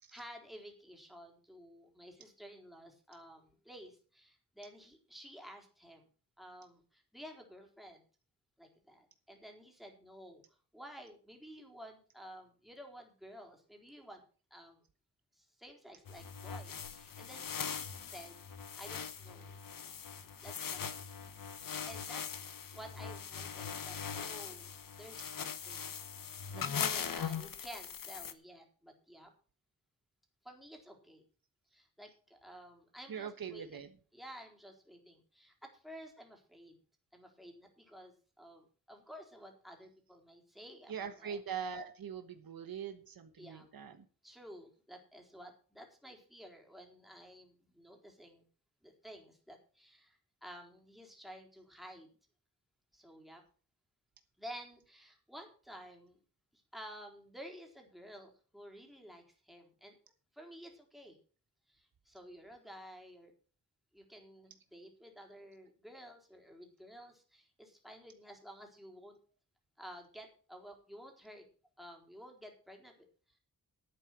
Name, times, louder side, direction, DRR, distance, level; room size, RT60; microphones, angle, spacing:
voice 1, 0.1-6.1 6.4-8.0 8.6-14.2 14.5-14.8 15.3-19.6 20.4-21.1 21.6-22.2 22.7-24.7 25.0-25.9 26.2-29.3 30.4-31.2 31.7-33.8 34.1-36.8 37.1-41.4 43.4-43.7 44.2-48.4 48.8-52.1 52.9-53.4 54.4-56.2 56.5-60.0 60.3-61.2 61.7-63.3 63.9-69.2 69.8-71.5 71.8-73.4, equal, ahead, 1 dB, 3.9 m, -53 dB
sound 1, 16.1-28.3, left 7 dB, 65° left, 1.1 m, -41 dB
voice 2, 26.5-27.0 33.1-34.0 40.9-44.0, right 7 dB, 70° right, 8 dB, 1.3 m, -43 dB
11.0 x 9.0 x 6.1 m, 0.39 s
wide cardioid pair, 110°, 36 cm